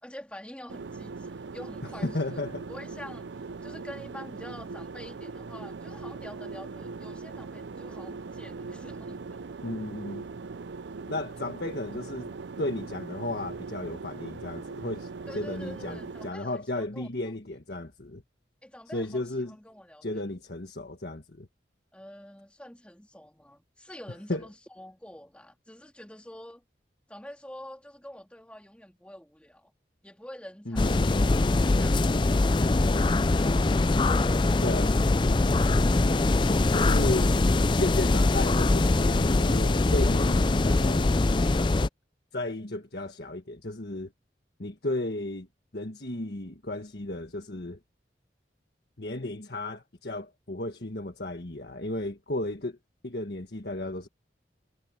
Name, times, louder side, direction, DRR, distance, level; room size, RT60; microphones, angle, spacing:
voice 1, 0.0-9.4 11.4-11.5 15.3-17.3 18.6-20.3 21.9-26.6 27.1-29.7 30.0-32.3, left 1 dB, 5° left, 3.4 m, -47 dB
sound 1, 0.7-16.3, right 4 dB, 80° right, 0.5 m, -40 dB
voice 2, 2.0-2.7 9.6-10.3 11.1-12.3 12.6-15.1 15.3-18.2 18.9-19.5 20.0-21.5 24.3-24.4 30.6-31.2 34.6-35.0 36.7-37.3 37.8-41.8 42.3-44.1 44.6-45.5 45.7-47.8 49.0-52.8 53.0-54.1, left 2 dB, 60° left, 1.6 m, -34 dB
sound 2, 30.7-41.9, left 2 dB, 25° left, 0.4 m, -23 dB
head